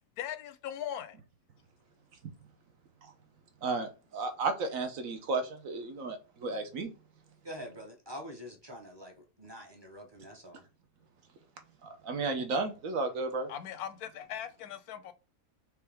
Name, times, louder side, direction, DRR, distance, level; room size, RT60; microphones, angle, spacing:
voice 1, 0.2-1.2 13.5-15.1, left 10 dB, 90° left, 1.1 m, -39 dB
voice 2, 3.6-6.9 11.8-13.5, right 3 dB, 70° right, 1.2 m, -33 dB
voice 3, 7.4-10.6, equal, 20° right, 0.8 m, -45 dB
4.7 x 3.1 x 3.4 m
omnidirectional pair, 1.5 m